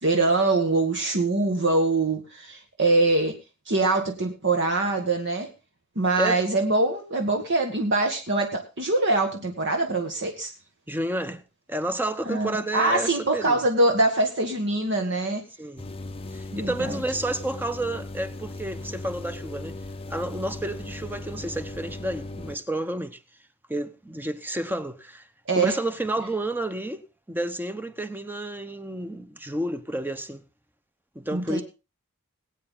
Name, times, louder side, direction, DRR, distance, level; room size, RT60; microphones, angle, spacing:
voice 1, 0.0-3.3 3.7-5.5 6.0-10.5 12.3-15.4 16.5-16.9 25.5-25.8 31.3-31.6, right 2 dB, 55° right, 1.8 m, -23 dB
voice 2, 10.9-11.4 11.7-13.6 15.6-15.8 16.3-19.8 20.1-23.2 23.7-25.3 25.5-30.4 31.1-31.6, right 1 dB, 10° right, 0.9 m, -30 dB
sound 1, 15.8-22.6, left 2 dB, 25° left, 0.7 m, -38 dB
21.0 x 8.9 x 3.8 m
head